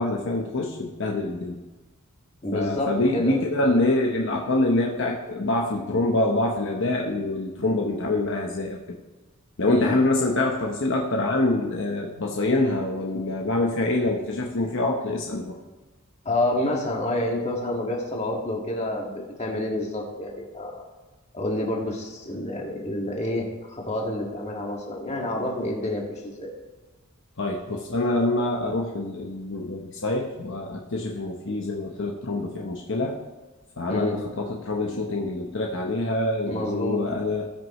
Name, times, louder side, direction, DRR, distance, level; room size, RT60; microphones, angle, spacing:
voice 1, 0.0-1.6 2.5-8.8 9.6-15.6 27.4-33.1 33.8-37.5, left 2 dB, 60° left, 0 dB, 1.0 m, -25 dB
voice 2, 2.4-3.8 9.6-9.9 16.3-20.8 21.3-26.5 33.9-34.2 36.5-37.0, left 1 dB, 30° left, -1 dB, 2.0 m, -28 dB
19.0 x 6.3 x 3.1 m, 1.2 s
head